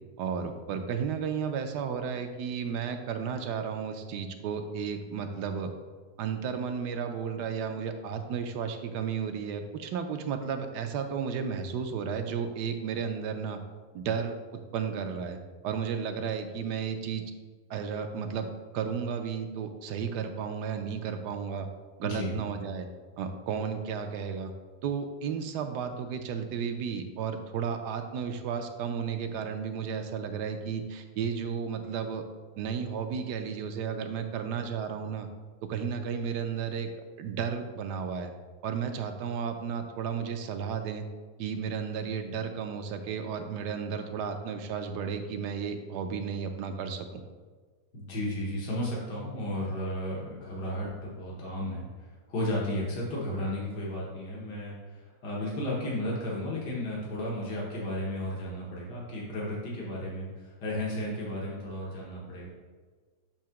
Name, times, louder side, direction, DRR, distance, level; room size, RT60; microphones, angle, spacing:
voice 1, 0.2-5.7 6.2-13.6 13.9-14.4 14.7-15.4 15.6-17.2 17.7-18.5 18.7-21.7 22.0-22.9 23.2-24.5 24.8-32.2 32.6-35.3 35.6-36.9 37.2-38.3 38.6-41.0 41.4-47.2, right 6 dB, 85° right, 6 dB, 1.2 m, -33 dB
voice 2, 22.0-22.4 47.9-51.9 52.3-62.5, left 1 dB, 85° left, -5 dB, 1.8 m, -34 dB
7.3 x 2.8 x 5.7 m, 1.4 s
omnidirectional pair, 1.8 m